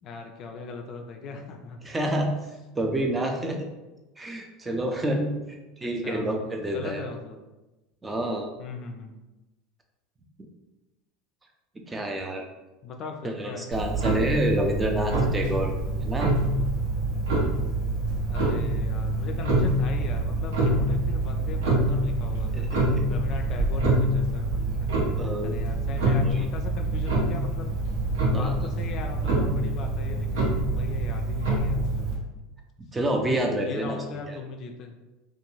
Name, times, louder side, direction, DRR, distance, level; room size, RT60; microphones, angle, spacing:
voice 1, 0.0-1.8 6.0-6.4 6.7-7.4 8.6-9.2 12.8-13.7 18.2-22.7 23.1-24.9 25.4-27.7 28.3-32.2 33.6-35.0, left 4 dB, 50° left, 4 dB, 0.3 m, -39 dB
voice 2, 1.8-2.3 2.7-3.7 4.2-5.3 5.8-7.0 8.0-8.5 11.9-12.4 13.2-15.7 16.0-16.3 21.7-21.8 22.5-23.0 25.2-25.5 26.2-26.5 28.3-28.5 32.8-34.0 34.3-34.4, right 1 dB, 20° right, 3 dB, 0.5 m, -28 dB
Clock, 13.7-32.1, right 2 dB, 75° right, 0.8 m, -26 dB
2.5 x 2.3 x 2.9 m, 1.1 s
hypercardioid pair, 80°, 0 cm